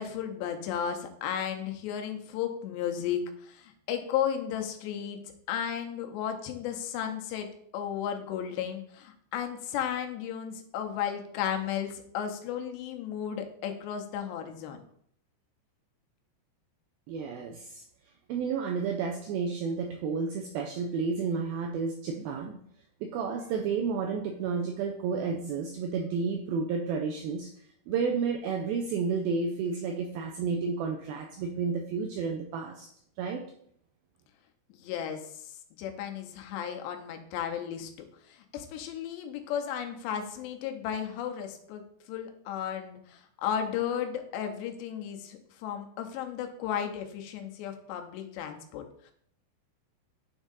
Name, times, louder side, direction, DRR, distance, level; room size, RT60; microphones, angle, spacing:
voice 1, 0.0-5.2 5.5-7.5 7.7-14.8 34.7-49.1, left 9 dB, 90° left, 5 dB, 2.9 m, -34 dB
voice 2, 17.1-17.8 18.3-22.6 23.0-27.5 27.9-32.9 33.2-33.4, right 5 dB, 85° right, 2 dB, 2.1 m, -31 dB
9.7 x 3.6 x 4.0 m, 0.66 s
omnidirectional pair, 5.0 m